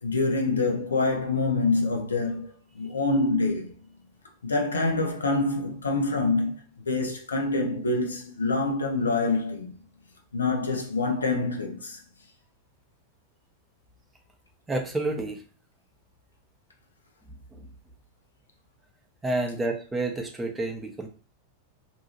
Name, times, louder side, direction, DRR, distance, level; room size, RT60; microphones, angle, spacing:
voice 1, 0.0-3.7 4.4-9.7 10.3-12.0, left 3 dB, 75° left, 0.5 m, -26 dB
voice 2, 14.7-15.4 19.2-21.1, right 2 dB, 10° right, 0.6 m, -29 dB
2.7 x 2.3 x 2.8 m
figure-of-eight pair, 90°, 0 cm